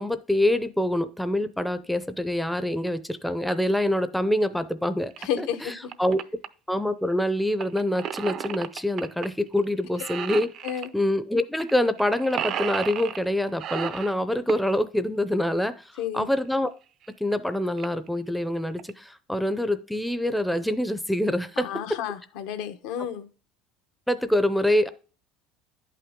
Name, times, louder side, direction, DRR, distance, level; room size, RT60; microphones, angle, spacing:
voice 1, 0.0-5.1 5.4-5.7 6.0-6.2 6.7-10.5 10.9-16.7 17.2-22.0 24.1-24.9, left 1 dB, ahead, 0.5 m, -25 dB
sound 1, 5.1-5.2 5.7-6.5 7.6-9.3 9.6-9.7 10.0-10.9 11.6-11.7 12.0-13.2 13.6-14.7 16.4-16.5 17.0-17.1 17.3-17.4 17.8-18.1 18.6-18.9, right 10 dB, 50° right, 0.5 m, -33 dB
voice 2, 5.2-5.9 10.6-10.9 16.0-16.3 21.6-23.3, left 9 dB, 80° left, 1.0 m, -31 dB
10.5 x 5.8 x 3.6 m
cardioid pair, 125°, 0 cm